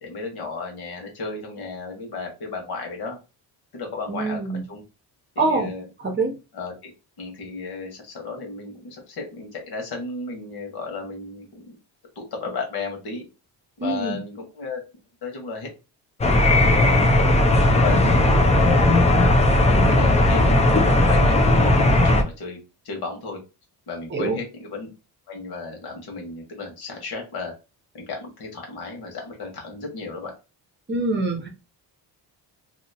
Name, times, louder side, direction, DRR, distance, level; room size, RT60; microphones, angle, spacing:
voice 1, 0.0-3.2 3.7-4.4 4.7-4.8 5.3-5.9 6.5-6.9 7.2-11.7 12.1-13.3 13.8-14.8 15.2-15.7 17.7-18.2 19.9-20.5 21.0-21.4 22.0-23.4 23.9-24.9 25.3-27.5 27.9-30.3, left 4 dB, 65° left, 1 dB, 1.5 m, -34 dB
voice 2, 4.1-4.6 5.4-5.7 6.0-6.4 13.8-14.2 19.7-20.0 24.1-24.4 30.9-31.5, right 3 dB, 25° right, 3 dB, 0.8 m, -25 dB
sound 1, 16.2-22.2, left 1 dB, 15° left, 0.4 m, -17 dB
2.9 x 2.8 x 2.8 m, 0.29 s
cardioid pair, 145°, 41 cm